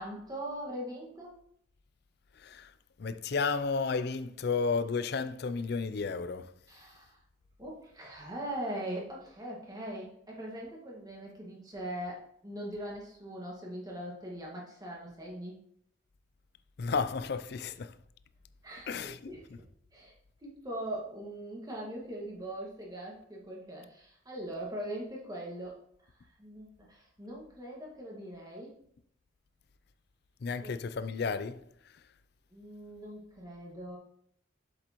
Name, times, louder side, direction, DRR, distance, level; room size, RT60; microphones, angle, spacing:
voice 1, 0.0-1.4 6.7-7.2 7.6-15.6 17.6-17.7 18.6-18.9 19.3-19.5 19.9-20.1 20.4-25.8 26.1-28.8 30.6-30.7 32.5-34.0, right 1 dB, 20° right, 1.8 m, -41 dB
voice 2, 2.4-2.7 3.0-6.5 16.8-18.0 18.9-19.2 30.4-31.6, left 4 dB, 55° left, 0.4 m, -32 dB
7.6 x 7.0 x 3.0 m
head